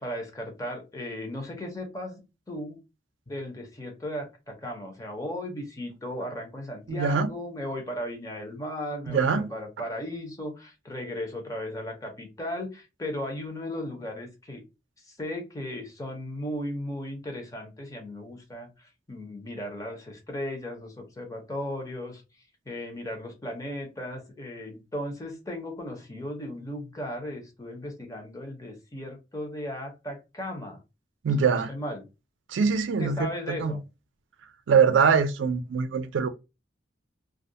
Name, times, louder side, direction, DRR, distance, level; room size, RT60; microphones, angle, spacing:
voice 1, 0.0-2.8 3.3-14.6 15.0-22.2 22.7-30.8 31.4-32.0 33.0-33.8, left 1 dB, 20° left, 0.7 m, -36 dB
voice 2, 6.9-7.3 9.1-9.5 31.2-31.7 32.5-33.8 34.7-36.3, right 6 dB, 80° right, 0.4 m, -23 dB
2.3 x 2.1 x 2.6 m
head